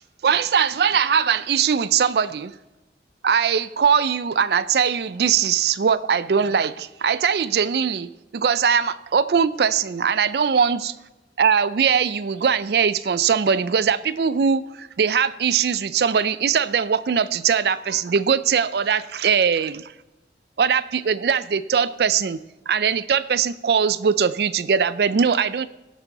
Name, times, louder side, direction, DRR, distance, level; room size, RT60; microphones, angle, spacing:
voice 1, 0.0-2.5 3.2-11.0 11.4-19.9 20.6-22.4 22.7-25.7, right 7 dB, 65° right, 16 dB, 0.4 m, -21 dB
17.0 x 7.2 x 4.1 m, 1.0 s
head